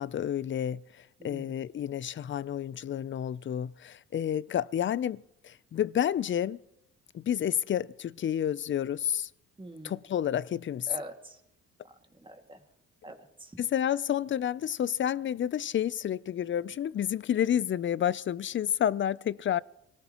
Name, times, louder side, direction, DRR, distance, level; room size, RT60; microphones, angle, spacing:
voice 1, 0.0-6.6 7.1-9.3 9.8-10.9 13.6-19.6, left 10 dB, 40° left, 0.5 m, -30 dB
voice 2, 1.2-1.5 9.6-9.9 10.9-11.4 12.1-12.6 13.0-13.6, right 1 dB, 15° right, 2.1 m, -44 dB
24.5 x 18.0 x 3.0 m
cardioid pair, 90°, 30 cm